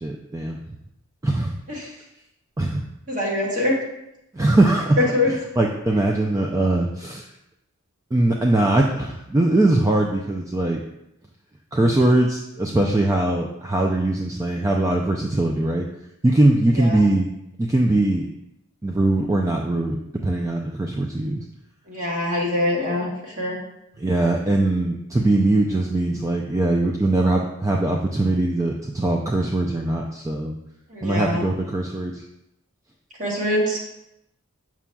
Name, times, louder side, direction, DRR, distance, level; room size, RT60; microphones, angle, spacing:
voice 1, 0.0-0.6 1.2-1.5 2.6-2.8 4.3-5.0 5.3-7.2 8.1-10.8 11.7-15.9 16.2-17.3 17.6-18.3 18.8-20.0 20.2-21.4 24.0-30.5 31.0-32.2, right 2 dB, 15° right, 0 dB, 0.3 m, -21 dB
voice 2, 3.1-3.8 5.0-5.3 16.8-17.0 21.9-23.6 30.9-31.4 33.2-33.8, left 1 dB, 40° right, -4 dB, 1.6 m, -23 dB
7.1 x 6.0 x 2.2 m, 0.84 s
head